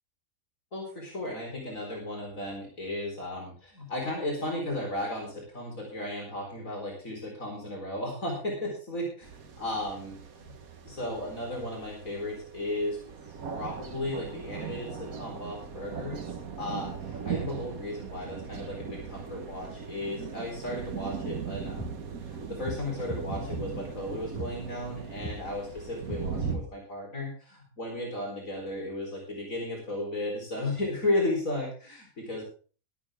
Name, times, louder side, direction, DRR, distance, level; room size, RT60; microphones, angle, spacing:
voice 1, 0.7-10.5 10.8-13.0 13.5-16.3 16.6-21.9 22.3-32.4, left 1 dB, 70° left, -1 dB, 4.8 m, -34 dB
sound 1, 9.2-26.6, right 6 dB, 90° right, 1.8 m, -39 dB
sound 2, 21.8-21.9 22.6-22.8 23.1-23.6 24.4-24.5 25.2-25.4 26.1-26.2 26.5-26.6, right 1 dB, 10° left, 6.7 m, -36 dB
13.5 x 12.5 x 3.7 m, 0.38 s
omnidirectional pair, 1.5 m